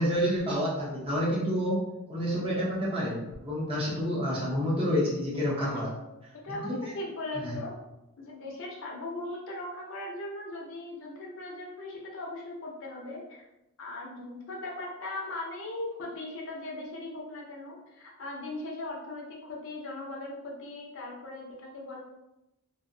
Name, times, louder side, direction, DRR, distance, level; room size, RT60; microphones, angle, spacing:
voice 1, 0.0-1.8 2.1-5.9 6.5-6.9 7.4-7.6, equal, 25° right, -6 dB, 0.7 m, -29 dB
voice 2, 6.3-7.7 8.2-13.4 13.8-22.0, left 2 dB, 60° left, -1 dB, 0.5 m, -39 dB
2.5 x 2.0 x 2.5 m, 0.91 s
head